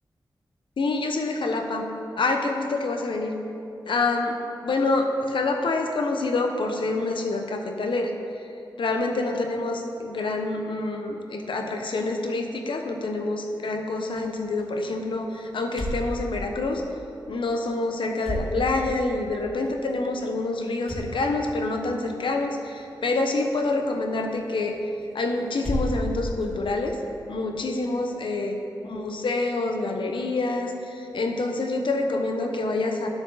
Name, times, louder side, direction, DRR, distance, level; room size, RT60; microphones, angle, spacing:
voice 1, 0.8-1.9 2.2-3.3 3.9-4.4 4.6-8.1 8.8-16.8 17.3-24.8 25.1-27.0 27.3-28.6 28.8-33.1, left 2 dB, 75° left, 4 dB, 0.9 m, -27 dB
sound 1, 14.0-27.6, equal, 5° left, 2.2 m, -37 dB
11.0 x 6.2 x 4.0 m, 2.7 s
cardioid pair, 50°, 8 cm